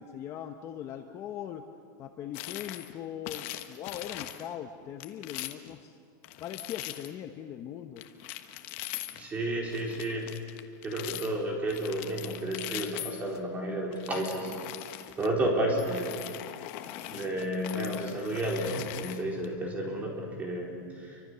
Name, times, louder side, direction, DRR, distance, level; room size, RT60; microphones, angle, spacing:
voice 1, 0.0-1.6 2.0-6.0 6.4-8.0, left 10 dB, 30° left, 5 dB, 1.0 m, -40 dB
sound 1, 2.3-2.9 3.3-4.5 5.0-5.7 6.2-7.1 8.0-9.3 9.7-11.3 11.7-13.4 13.9-15.3 15.8-19.5, left 14 dB, 45° left, 1.3 m, -41 dB
voice 2, 9.1-10.3 10.8-14.5 15.2-16.2 17.1-21.2, right 1 dB, 15° right, -1 dB, 4.4 m, -31 dB
29.5 x 25.0 x 6.9 m, 2.3 s
supercardioid pair, 170°, 10 cm